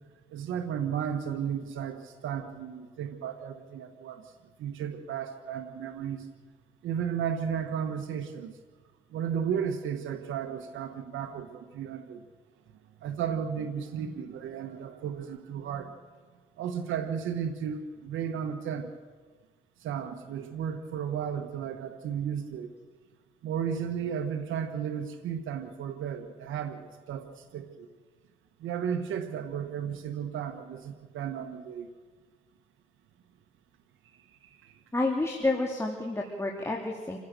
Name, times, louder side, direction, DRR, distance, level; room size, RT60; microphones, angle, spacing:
voice 1, 0.3-4.2 4.6-6.3 6.8-8.5 9.1-12.2 13.0-15.9 16.6-18.9 19.8-22.7 23.4-27.9 28.6-31.9 34.4-34.7, right 8 dB, 85° right, 6 dB, 1.5 m, -34 dB
voice 2, 34.9-37.2, left 2 dB, 15° left, 0 dB, 2.9 m, -29 dB
27.5 x 16.5 x 6.8 m, 1.5 s
cardioid pair, 90°, 20 cm